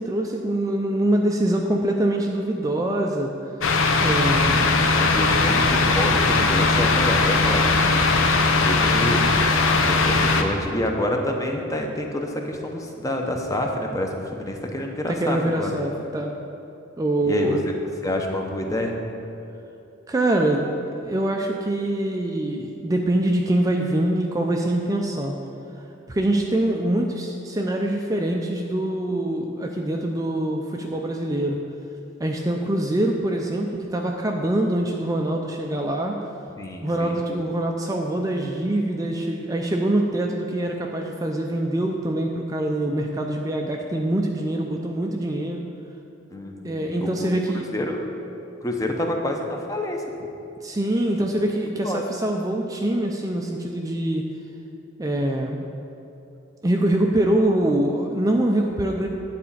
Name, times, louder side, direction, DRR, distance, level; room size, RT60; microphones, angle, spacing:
voice 1, 0.0-3.3 4.0-4.9 15.1-16.3 17.0-17.6 20.1-20.8 21.1-25.4 26.1-31.6 32.2-36.2 36.8-45.7 46.6-47.7 50.6-54.3 55.0-55.6 56.6-59.1, right 1 dB, 20° right, 1 dB, 0.4 m, -24 dB
sound 1, 3.6-10.4, left 3 dB, 90° left, 0.7 m, -19 dB
voice 2, 5.0-7.8 8.3-15.7 17.2-17.7 18.0-19.0 36.6-37.2 46.3-47.3 47.7-48.1 48.6-50.1 51.8-52.0, left 1 dB, 15° left, 2 dB, 0.7 m, -28 dB
9.3 x 4.2 x 7.2 m, 2.8 s
head